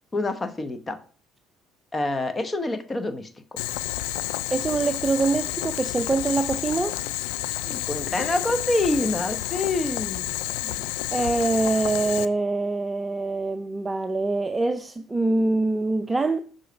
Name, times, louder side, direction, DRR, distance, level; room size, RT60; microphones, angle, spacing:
voice 1, 0.1-1.0 1.9-3.6 7.7-10.3, left 2 dB, 25° left, 0.9 m, -27 dB
Boiling, 3.6-12.2, left 16 dB, 90° left, 0.3 m, -30 dB
voice 2, 4.5-7.0 10.4-10.8 11.1-16.4, right 3 dB, 20° right, 0.5 m, -24 dB
6.4 x 3.9 x 5.1 m
supercardioid pair, 75°, 0 cm